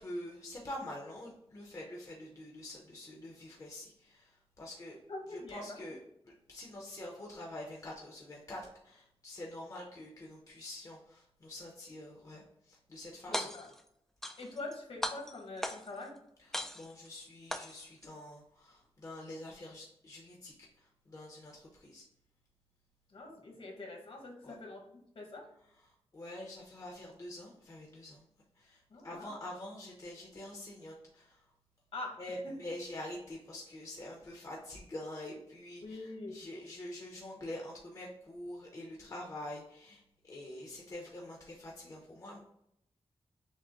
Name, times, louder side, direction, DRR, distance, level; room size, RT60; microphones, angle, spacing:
voice 1, 0.0-5.0 5.3-6.0 6.2-13.5 16.4-22.0 24.4-24.5 25.8-28.2 28.6-31.4 32.2-42.4, left 1 dB, 30° left, -2 dB, 0.7 m, -46 dB
voice 2, 5.1-5.8 13.3-13.7 14.4-16.2 23.1-24.8 25.1-25.5 28.9-29.3 31.9-32.2 32.4-32.5 35.8-36.4, left 2 dB, 65° left, 0 dB, 1.3 m, -44 dB
sound 1, 13.2-13.8 14.2-14.7 15.0-16.0 16.5-17.1 17.5-18.1, equal, 5° left, 0.3 m, -38 dB
6.3 x 2.1 x 3.6 m, 0.75 s
wide cardioid pair, 175°, 11 cm